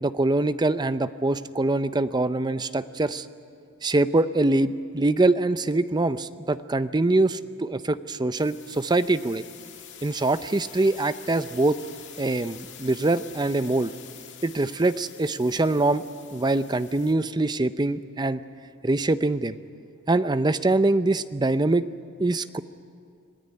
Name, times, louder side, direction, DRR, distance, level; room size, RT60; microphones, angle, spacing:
voice 1, 0.0-3.3 3.8-9.4 10.0-11.8 12.2-13.9 14.4-16.0 16.3-18.4 18.8-19.6 20.1-21.9 22.2-22.6, right 2 dB, 20° right, 12 dB, 0.5 m, -24 dB
sound 1, 8.3-17.1, left 10 dB, 55° left, 1.9 m, -46 dB
26.0 x 17.5 x 9.5 m, 2.3 s
head